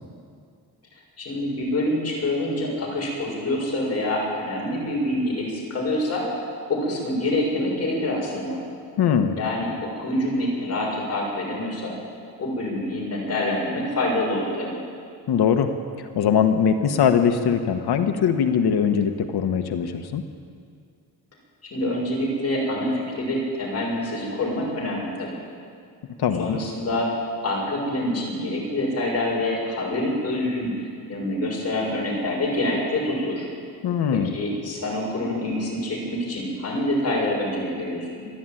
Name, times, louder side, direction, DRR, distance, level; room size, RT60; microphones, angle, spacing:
voice 1, 1.2-6.2 6.7-8.6 9.4-11.9 12.4-14.8 21.7-25.3 26.4-27.1 27.4-33.4 34.1-38.1, left 1 dB, 40° left, -3 dB, 6.9 m, -26 dB
voice 2, 9.0-9.4 15.3-15.7 16.0-20.2 26.2-26.6 33.8-34.4, left 7 dB, 75° left, 7 dB, 1.3 m, -21 dB
27.0 x 11.5 x 9.2 m, 2.2 s
cardioid pair, 145°, 39 cm